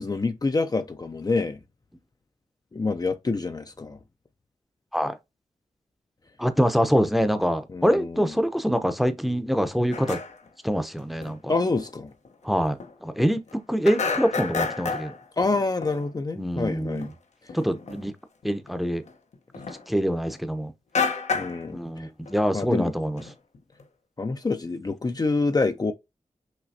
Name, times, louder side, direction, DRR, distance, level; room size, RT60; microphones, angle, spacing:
voice 1, 0.0-1.6 2.7-4.0 7.7-8.3 11.5-12.1 15.4-17.1 21.3-22.1 22.5-22.9 24.2-25.9, left 3 dB, 35° left, 0.6 m, -27 dB
voice 2, 6.4-10.2 10.6-11.5 12.4-15.1 16.4-17.1 17.5-18.1 18.4-19.0 19.9-20.7 21.7-23.2, equal, ahead, 0.8 m, -25 dB
sound 1, 9.9-10.5 11.2-11.3 11.7-11.9 12.3-12.4 12.7-13.6 13.8-16.1 16.8-17.1 17.5-18.1 18.4-20.4 20.9-21.7 22.0-22.4 22.7-22.8 23.1-23.8, left 5 dB, 75° left, 0.9 m, -31 dB
5.9 x 3.0 x 2.7 m
cardioid pair, 65°, 12 cm